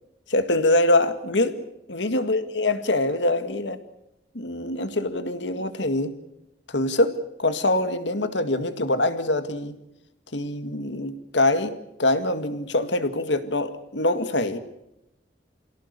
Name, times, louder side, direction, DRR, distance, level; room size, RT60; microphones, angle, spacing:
voice 1, 0.3-3.8 4.3-6.1 6.7-9.8 10.3-11.7 12.0-14.6, left 2 dB, 85° left, 9 dB, 2.1 m, -24 dB
27.0 x 17.5 x 8.3 m, 0.87 s
head